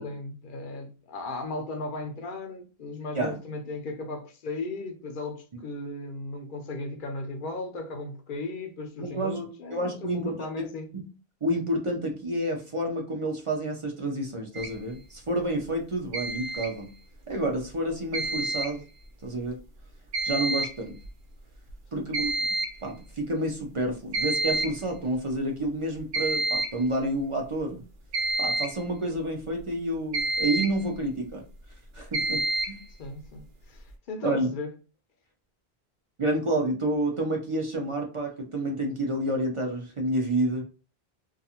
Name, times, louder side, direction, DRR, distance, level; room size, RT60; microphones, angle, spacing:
voice 1, 0.0-10.9 22.0-22.1 33.0-34.7, left 2 dB, 60° left, 0.7 m, -36 dB
voice 2, 9.0-9.4 9.7-10.7 10.9-11.1 11.4-16.9 17.3-18.8 19.2-19.6 20.2-21.0 21.9-22.3 22.8-27.8 28.4-31.4 31.9-32.8 34.2-34.5 36.2-40.6, right 1 dB, 40° right, 0.5 m, -29 dB
sound 1, 14.6-14.7 16.1-16.7 18.1-18.7 20.1-20.7 21.0-21.1 21.7-21.8 22.1-22.7 24.1-24.8 26.1-26.8 28.1-28.8 30.1-30.8 32.1-32.8, right 2 dB, 75° right, 0.9 m, -28 dB
2.4 x 2.4 x 2.8 m
omnidirectional pair, 1.1 m